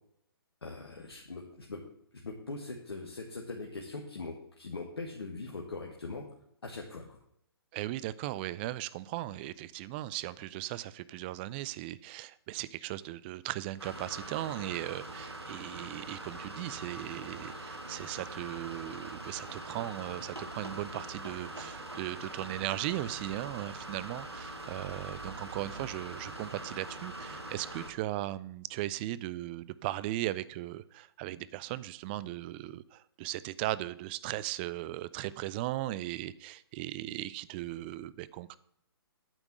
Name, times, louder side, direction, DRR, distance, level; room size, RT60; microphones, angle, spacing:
voice 1, 0.6-1.8 2.1-6.3 6.6-7.2, left 3 dB, 75° left, 0 dB, 1.7 m, -41 dB
voice 2, 7.7-38.6, right 15 dB, 25° right, 17 dB, 0.4 m, -37 dB
sound 1, 13.8-27.9, right 2 dB, 90° right, 2.0 m, -43 dB
9.1 x 5.8 x 7.6 m, 0.74 s
figure-of-eight pair, 135°, 13 cm